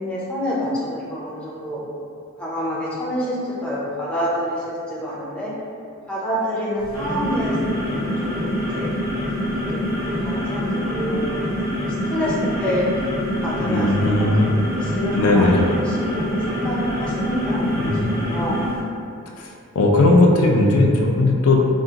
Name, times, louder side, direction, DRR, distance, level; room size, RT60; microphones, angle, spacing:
voice 1, 0.0-1.8 2.4-3.4 3.6-5.5 6.1-7.5 7.9-8.1 8.4-8.9 9.7-11.2 11.6-11.8 12.1-12.9 13.4-18.7, equal, 5° left, -8 dB, 0.5 m, -27 dB
sound 1, 6.8-18.8, left 1 dB, 25° right, 1.2 m, -25 dB
voice 2, 13.6-14.6 15.1-15.6 17.8-18.1 19.4-19.5 19.8-21.7, left 2 dB, 70° left, 0 dB, 0.3 m, -17 dB
3.6 x 2.0 x 2.7 m, 2.5 s
head